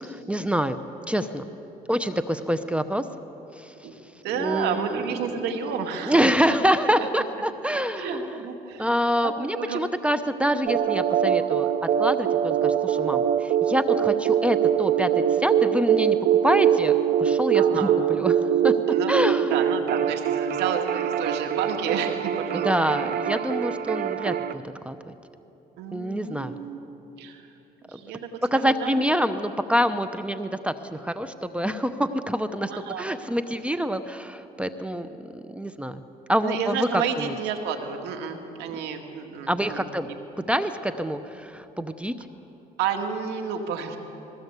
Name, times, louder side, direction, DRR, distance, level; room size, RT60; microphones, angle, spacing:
voice 1, 0.0-0.8 1.1-1.5 1.9-3.0 3.6-3.7 4.3-5.3 6.0-8.3 8.8-11.7 12.0-16.2 16.4-16.9 17.2-18.7 19.1-19.5 22.5-25.1 25.9-26.6 27.9-28.0 28.5-32.7 33.0-36.0 36.3-37.3 39.5-40.1 40.5-42.1, equal, 5° right, 11 dB, 0.8 m, -26 dB
voice 2, 4.2-6.3 7.0-7.1 8.0-9.0 9.2-9.8 17.5-18.0 18.9-19.1 19.5-23.1 25.8-26.8 27.2-27.4 27.9-29.1 32.7-33.2 36.4-40.1 42.8-44.0, right 7 dB, 85° right, 4 dB, 2.2 m, -31 dB
sound 1, 10.7-24.5, right 9 dB, 65° right, 0.8 m, -23 dB
21.0 x 18.0 x 8.3 m, 3.0 s
cardioid pair, 110°, 17 cm